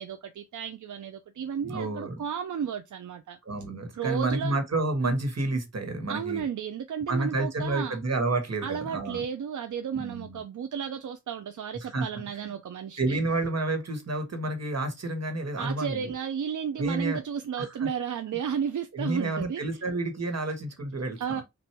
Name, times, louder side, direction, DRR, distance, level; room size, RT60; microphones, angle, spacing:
voice 1, 0.0-3.4 4.0-4.6 6.1-8.0 8.6-13.2 15.6-19.6 21.2-21.4, right 7 dB, 90° right, 0.5 m, -33 dB
voice 2, 1.6-2.2 3.4-6.4 7.1-9.2 9.9-10.4 11.8-12.1 12.3-12.5 13.0-16.1 16.8-17.2 17.6-17.9 18.9-21.4, right 2 dB, 60° right, 1.6 m, -30 dB
5.9 x 2.6 x 3.3 m
wide cardioid pair, 70°, 29 cm